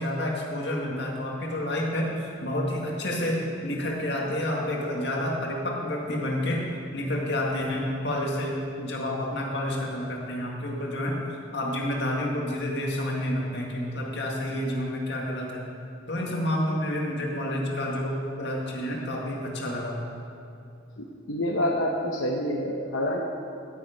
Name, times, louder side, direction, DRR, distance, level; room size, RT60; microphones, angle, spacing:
voice 1, 0.0-6.7 6.9-11.2 11.5-15.6 16.1-20.0, left 1 dB, 60° left, -1 dB, 1.9 m, -29 dB
voice 2, 21.0-23.2, left 1 dB, 90° left, -1 dB, 0.9 m, -27 dB
11.5 x 8.8 x 5.2 m, 2.6 s
head